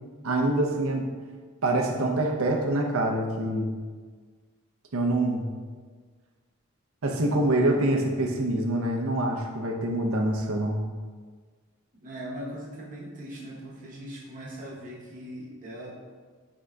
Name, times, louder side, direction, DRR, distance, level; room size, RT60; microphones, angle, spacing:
voice 1, 0.2-1.1 1.6-3.7 4.9-5.5 7.0-10.8, right 1 dB, 65° right, 1 dB, 0.6 m, -25 dB
voice 2, 12.0-15.9, equal, 35° right, -5 dB, 0.9 m, -40 dB
4.9 x 3.7 x 2.2 m, 1.5 s
head